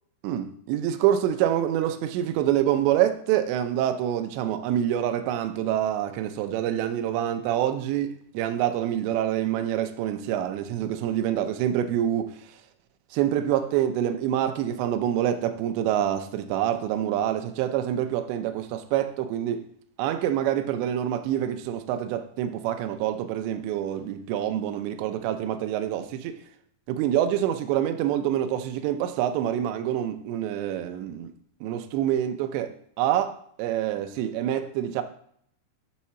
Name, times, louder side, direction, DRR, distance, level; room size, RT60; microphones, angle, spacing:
voice 1, 0.2-12.4 13.1-19.6 20.0-26.4 26.9-31.3 31.6-35.0, right 11 dB, 80° right, 2.8 m, -26 dB
7.3 x 4.2 x 5.7 m
omnidirectional pair, 5.2 m